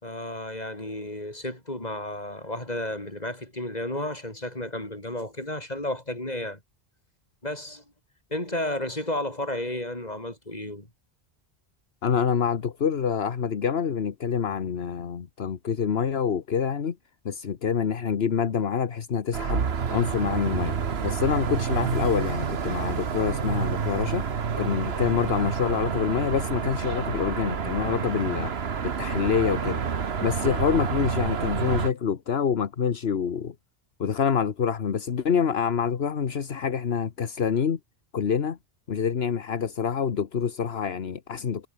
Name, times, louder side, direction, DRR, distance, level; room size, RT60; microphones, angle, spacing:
voice 1, 0.0-6.6 7.4-7.8 8.3-10.9 30.4-30.5, left 1 dB, 40° left, 5.7 m, -32 dB
voice 2, 12.0-17.0 17.2-19.6 19.9-20.8 21.0-24.2 24.6-29.8 30.2-33.5 34.0-37.8 38.1-38.6 38.9-41.7, left 7 dB, 75° left, 1.4 m, -26 dB
sound 1, 19.3-31.9, right 6 dB, 80° right, 1.5 m, -28 dB
omnidirectional pair, 1.1 m